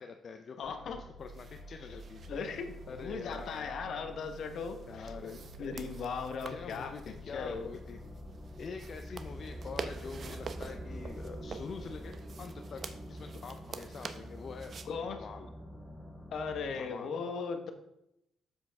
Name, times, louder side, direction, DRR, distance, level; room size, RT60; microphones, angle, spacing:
voice 1, 0.0-2.2 2.9-3.7 4.9-5.5 6.0-6.2 6.5-8.0 8.6-14.7 15.1-15.5 16.7-17.2, left 5 dB, 50° left, 6 dB, 0.5 m, -45 dB
voice 2, 0.6-1.0 2.3-5.1 5.6-7.7 14.8-15.2 16.3-17.7, left 5 dB, 70° left, 6 dB, 1.1 m, -38 dB
sound 1, 0.6-16.7, equal, 15° right, 3.2 m, -46 dB
sound 2, 1.2-14.9, right 5 dB, 50° right, 0.7 m, -48 dB
7.5 x 7.4 x 3.5 m, 0.82 s
cardioid pair, 100°, 0 cm